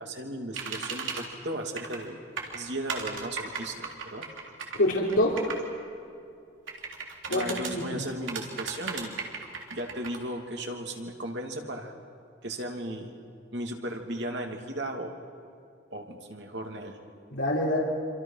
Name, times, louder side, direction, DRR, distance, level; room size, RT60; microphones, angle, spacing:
voice 1, 0.0-2.2 2.5-4.2 7.3-9.2 9.7-11.9 12.4-13.1 13.5-15.1 15.9-17.0, right 1 dB, 65° right, 2 dB, 2.9 m, -36 dB
sound 1, 0.5-1.2 1.8-2.1 2.4-5.6 6.7-7.7 8.3-10.2, right 5 dB, 90° right, 3.6 m, -36 dB
voice 2, 4.7-5.3 7.3-8.0 17.3-17.8, left 1 dB, 90° left, -5 dB, 3.7 m, -26 dB
27.5 x 26.0 x 5.8 m, 2.5 s
head